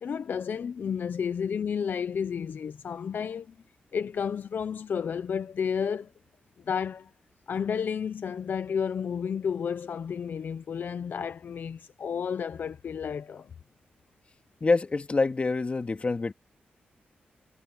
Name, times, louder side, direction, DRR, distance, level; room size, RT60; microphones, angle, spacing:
voice 1, 0.0-3.5 3.9-6.1 6.7-7.1 7.5-13.5, left 7 dB, 70° left, 0.9 m, -31 dB
voice 2, 14.6-16.3, left 3 dB, 35° left, 2.5 m, -26 dB
cardioid pair, 75°, 3 cm